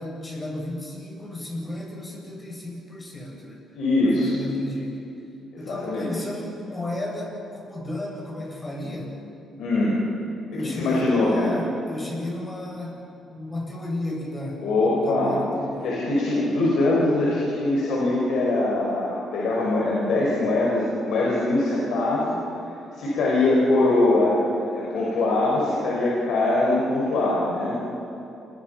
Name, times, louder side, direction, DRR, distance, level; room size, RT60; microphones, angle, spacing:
voice 1, 0.0-3.7 4.0-5.0 5.6-9.2 10.5-13.0 13.3-15.9, left 1 dB, 20° left, -1 dB, 7.9 m, -34 dB
voice 2, 3.7-4.4 5.5-6.1 9.6-10.0 10.5-11.6 14.6-15.4 15.8-22.3 22.9-27.8, left 2 dB, 80° left, -5 dB, 5.9 m, -22 dB
29.5 x 21.5 x 5.9 m, 2.9 s
cardioid pair, 90°, 0 cm